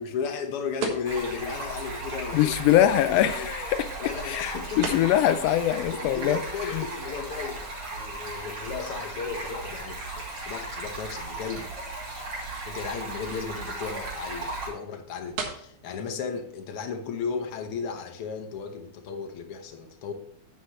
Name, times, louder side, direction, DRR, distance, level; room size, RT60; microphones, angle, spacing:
voice 1, 0.0-3.5 4.0-5.0 5.9-12.0 12.7-20.1, left 6 dB, 60° left, 5 dB, 1.8 m, -35 dB
sound 1, 0.7-17.7, right 4 dB, 75° right, 2.8 m, -43 dB
Stream, 1.1-14.7, right 2 dB, 50° right, 3.8 m, -36 dB
voice 2, 2.3-3.9 4.2-6.4 6.8-6.9, left 12 dB, 85° left, 11 dB, 1.4 m, -23 dB
9.5 x 8.6 x 3.1 m, 0.65 s
omnidirectional pair, 3.4 m